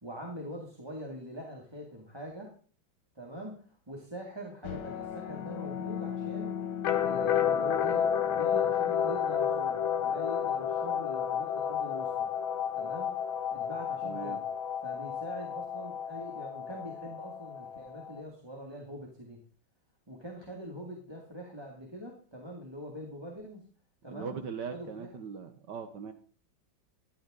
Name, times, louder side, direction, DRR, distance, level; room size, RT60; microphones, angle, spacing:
voice 1, 0.0-2.5 3.2-6.6 7.0-12.3 12.7-13.1 13.5-14.4 14.8-19.4 20.1-23.6 24.0-24.3 24.7-25.1, equal, 15° right, -1 dB, 2.1 m, -43 dB
sound 1, 4.6-18.2, left 8 dB, 80° left, 1.8 m, -31 dB
voice 2, 14.0-14.4 24.1-26.1, right 6 dB, 65° right, 8 dB, 1.5 m, -40 dB
15.0 x 11.5 x 3.7 m, 0.40 s
omnidirectional pair, 2.2 m